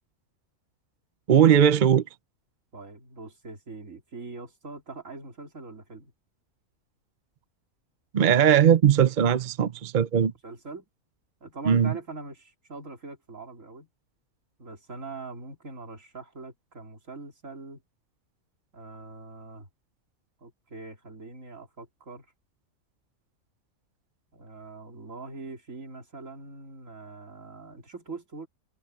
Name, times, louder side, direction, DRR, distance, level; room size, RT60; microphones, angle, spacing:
voice 1, 1.3-2.0 8.1-10.3 11.7-11.9, right 8 dB, 45° right, 0.6 m, -19 dB
voice 2, 2.7-6.1 10.2-10.9 11.4-13.9 14.6-17.8 18.7-19.7 20.4-22.3 24.3-28.5, right 3 dB, 65° right, 3.4 m, -42 dB
omnidirectional pair, 1.5 m